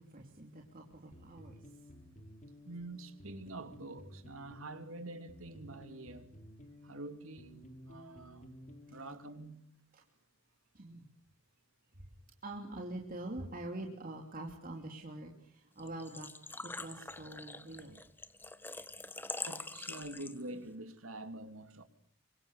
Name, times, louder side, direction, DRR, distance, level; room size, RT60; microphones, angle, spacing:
voice 1, 0.0-1.6 8.9-9.0 9.9-10.0 10.7-11.1 12.0-12.1 12.4-16.3 16.6-18.0, right 1 dB, 45° right, 2.9 m, -45 dB
sound 1, 1.1-9.6, equal, 40° left, 3.4 m, -54 dB
voice 2, 2.6-6.3 6.8-8.6 8.9-9.7 19.5-21.8, right 2 dB, 90° right, 2.9 m, -46 dB
Engine / Trickle dribble / Fill (with liquid), 15.8-20.6, left 2 dB, 10° left, 1.2 m, -44 dB
28.0 x 25.0 x 6.7 m
head